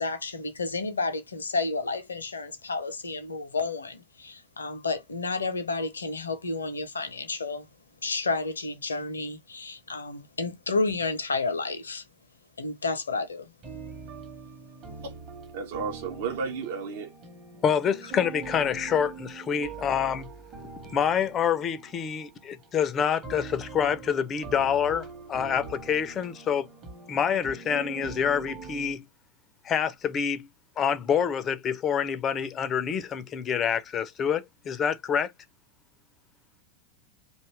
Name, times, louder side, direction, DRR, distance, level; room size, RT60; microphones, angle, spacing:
voice 1, 0.0-7.7 8.0-12.0 12.6-13.5, left 3 dB, 75° left, 0.6 m, -31 dB
sound 1, 13.6-29.0, right 5 dB, 30° right, 0.9 m, -43 dB
voice 2, 15.5-17.1, right 5 dB, 55° right, 0.6 m, -33 dB
voice 3, 17.6-20.3 20.9-26.7 27.1-29.1 29.6-30.5 30.8-35.3, left 8 dB, 25° left, 0.4 m, -27 dB
2.7 x 2.3 x 3.0 m
figure-of-eight pair, 90°, 0 cm